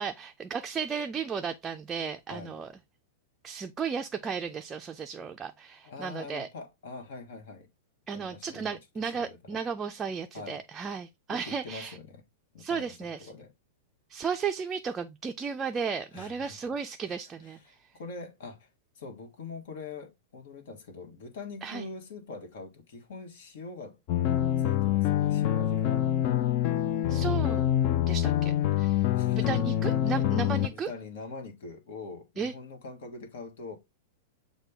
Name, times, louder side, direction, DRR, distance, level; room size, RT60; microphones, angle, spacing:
voice 1, 0.0-2.7 3.4-6.5 8.1-12.0 12.6-13.3 14.1-17.8 21.6-21.9 27.1-27.6 28.1-29.1 29.3-30.9 32.4-32.5, right 6 dB, 20° right, 0.4 m, -34 dB
voice 2, 5.8-7.7 8.1-9.6 10.3-10.6 11.3-12.2 12.5-13.5 16.1-16.7 17.0-18.7 18.9-24.0 24.6-26.0 29.1-29.6 30.0-30.2 30.7-33.7, left 4 dB, 65° left, 1.2 m, -44 dB
sound 1, 24.1-30.7, left 11 dB, 50° left, 0.5 m, -26 dB
6.5 x 2.2 x 3.4 m
hypercardioid pair, 105°, 0 cm